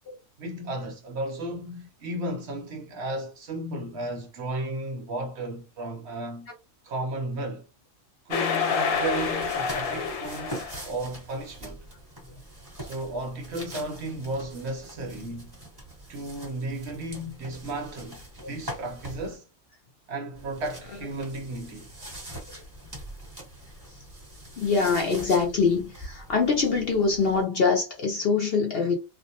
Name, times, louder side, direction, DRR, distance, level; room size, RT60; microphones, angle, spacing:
voice 1, 0.4-6.5 6.8-7.7 8.3-10.6 10.8-11.9 12.8-15.6 16.1-19.4 20.1-21.9, right 2 dB, 60° right, 0.9 m, -34 dB
sound 1, 8.3-10.9, left 5 dB, 75° left, 1.0 m, -28 dB
sound 2, 8.9-19.4 20.3-27.4, right 1 dB, 15° right, 1.2 m, -43 dB
voice 2, 24.6-29.0, left 4 dB, 60° left, 0.7 m, -24 dB
2.5 x 2.1 x 2.7 m
omnidirectional pair, 1.4 m